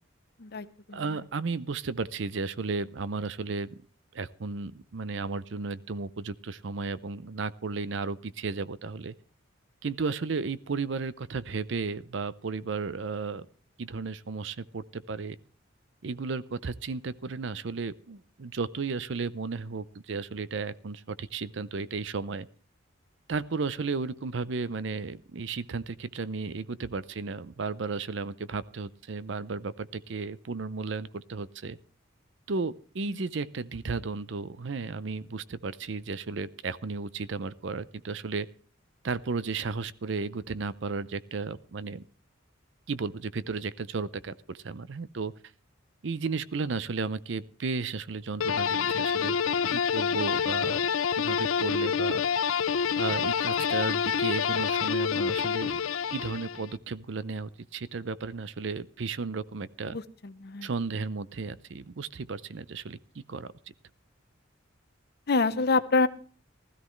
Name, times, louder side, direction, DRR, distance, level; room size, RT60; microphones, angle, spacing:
voice 1, 0.4-1.0 33.1-33.2 59.9-60.7 65.3-66.1, left 3 dB, 50° left, 13 dB, 0.7 m, -27 dB
voice 2, 0.9-3.8 4.1-9.1 9.8-13.5 13.8-15.4 16.0-22.5 23.3-31.8 32.5-38.5 39.0-42.0 42.9-45.3 46.0-49.4 49.7-50.8 51.2-52.2 53.0-55.8 56.1-60.0 60.6-63.5, right 4 dB, 60° right, 16 dB, 0.6 m, -34 dB
sound 1, 48.4-56.7, left 7 dB, 85° left, 0.5 m, -27 dB
16.0 x 14.0 x 3.1 m, 0.41 s
head